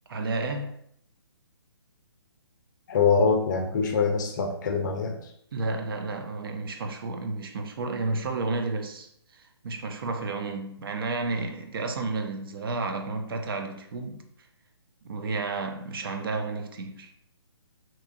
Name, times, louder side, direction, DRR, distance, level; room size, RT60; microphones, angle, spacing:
voice 1, 0.1-0.7 5.5-14.2 15.0-17.1, right 3 dB, 55° right, 0.4 m, -31 dB
voice 2, 2.9-5.1, left 5 dB, 45° left, 0.4 m, -24 dB
2.9 x 2.2 x 2.4 m
figure-of-eight pair, 140°, 14 cm